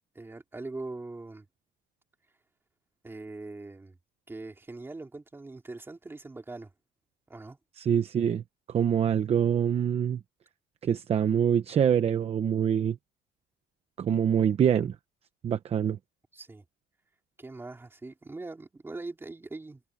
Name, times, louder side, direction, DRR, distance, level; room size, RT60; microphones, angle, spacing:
voice 1, 0.2-1.5 3.0-4.0 4.3-6.7 7.3-7.6 16.3-16.6 17.4-19.8, right 3 dB, 10° right, 3.5 m, -41 dB
voice 2, 7.8-8.4 8.7-10.2 10.8-13.0 14.0-14.9 15.4-16.0, right 8 dB, 30° right, 0.9 m, -25 dB
cardioid pair, 165°, 21 cm